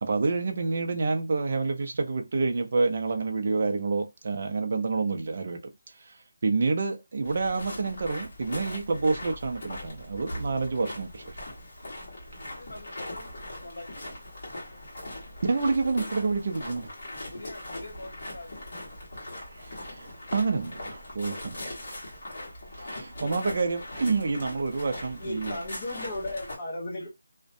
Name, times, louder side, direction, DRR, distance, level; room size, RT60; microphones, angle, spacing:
voice 1, 0.0-5.6 6.0-6.2 6.4-11.3 15.5-16.9 19.6-21.8 23.0-25.6, right 4 dB, 35° right, 0.4 m, -28 dB
sound 1, 7.2-26.6, left 1 dB, 40° left, 1.2 m, -40 dB
voice 2, 12.4-14.1 17.1-19.0 22.7-23.0 27.0-27.1, left 1 dB, 85° left, 0.9 m, -46 dB
voice 3, 25.2-27.1, left 1 dB, 25° left, 0.5 m, -35 dB
2.5 x 2.1 x 2.4 m
figure-of-eight pair, 175°, 0 cm